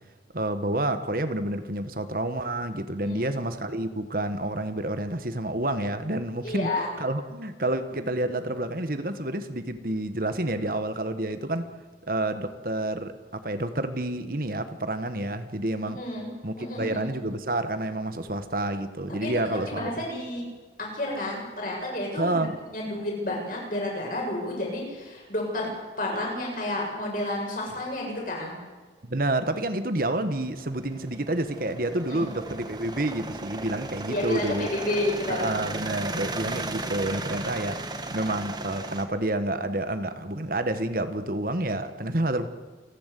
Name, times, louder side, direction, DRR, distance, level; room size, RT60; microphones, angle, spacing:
voice 1, 0.3-11.7 12.1-16.0 16.4-19.9 22.2-22.6 29.0-34.7 35.3-37.8 38.1-42.5, right 1 dB, 50° right, 10 dB, 1.4 m, -29 dB
voice 2, 6.4-6.9 15.9-16.3 16.6-17.2 19.2-20.4 20.8-22.4 22.7-25.7 26.0-28.6 32.1-32.3 34.1-35.5, left 1 dB, 50° left, -2 dB, 7.9 m, -31 dB
sound 1, 30.3-39.0, right 2 dB, 25° right, 1.6 m, -36 dB
28.5 x 11.5 x 8.4 m, 1.3 s
head